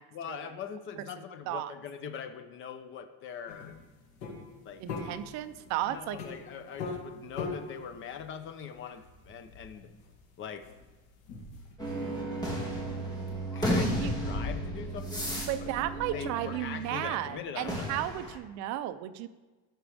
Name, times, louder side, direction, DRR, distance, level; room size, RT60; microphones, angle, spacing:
voice 1, 0.1-3.8 4.6-4.8 5.9-9.9 10.4-10.7 13.5-15.7 16.1-18.1, left 7 dB, 30° left, 8 dB, 0.7 m, -42 dB
sound 1, 3.5-11.7, left 4 dB, 70° left, 2.7 m, -42 dB
voice 2, 4.8-6.2 13.7-14.1 15.5-19.3, right 13 dB, 45° right, 12 dB, 0.5 m, -34 dB
sound 2, 11.8-17.2 17.6-18.4, equal, 10° left, 1.5 m, -33 dB
16.0 x 6.1 x 3.4 m, 1.2 s
cardioid pair, 160°, 40 cm